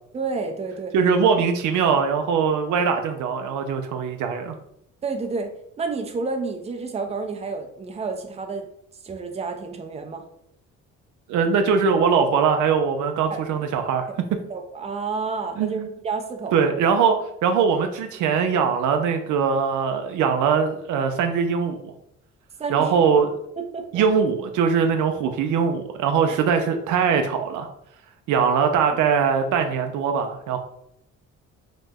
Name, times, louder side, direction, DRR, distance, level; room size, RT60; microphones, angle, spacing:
voice 1, 0.1-0.9 5.0-8.7 9.0-10.2 13.3-13.4 14.1-14.2 14.5-16.6 22.6-22.9 23.6-24.0, right 4 dB, 20° right, 5 dB, 0.4 m, -30 dB
voice 2, 0.9-4.5 11.3-14.1 15.6-15.9 16.5-21.9 22.7-23.4 23.9-27.7 28.3-30.6, right 6 dB, 80° right, 6 dB, 0.5 m, -21 dB
2.9 x 2.0 x 3.4 m, 0.75 s
cardioid pair, 90°, 30 cm